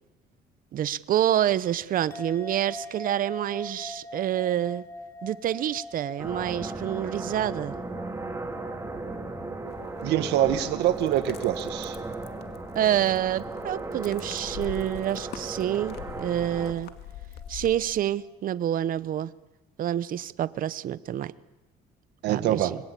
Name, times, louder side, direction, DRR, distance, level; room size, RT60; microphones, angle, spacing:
voice 1, 0.7-4.8 5.2-7.7 12.7-16.9 17.5-19.3 19.8-21.3 22.3-22.8, right 11 dB, 55° right, 17 dB, 0.9 m, -27 dB
sound 1, 2.1-18.6, left 2 dB, 15° left, 3.3 m, -45 dB
sound 2, 6.2-16.7, right 2 dB, 15° right, 3.0 m, -36 dB
sound 3, 9.7-18.0, left 10 dB, 70° left, 2.1 m, -44 dB
voice 2, 10.0-12.0 22.2-22.7, right 12 dB, 85° right, 10 dB, 1.7 m, -25 dB
26.5 x 21.0 x 8.4 m, 1.0 s
cardioid pair, 110°, 17 cm